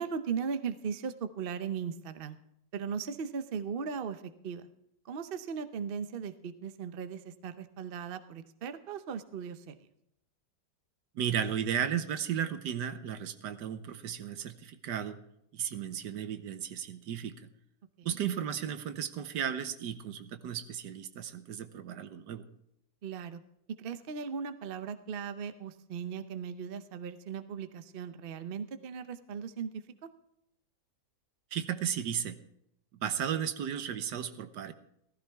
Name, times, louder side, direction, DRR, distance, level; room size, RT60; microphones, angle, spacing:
voice 1, 0.0-2.4 2.7-4.6 5.0-9.8 18.0-18.2 23.0-23.4 23.8-30.1, right 6 dB, 55° right, 10 dB, 0.6 m, -38 dB
voice 2, 11.1-15.2 15.5-17.5 18.0-22.4 31.5-32.4 32.9-34.7, right 9 dB, 70° right, 11 dB, 1.4 m, -34 dB
15.5 x 14.5 x 3.5 m, 0.77 s
omnidirectional pair, 2.0 m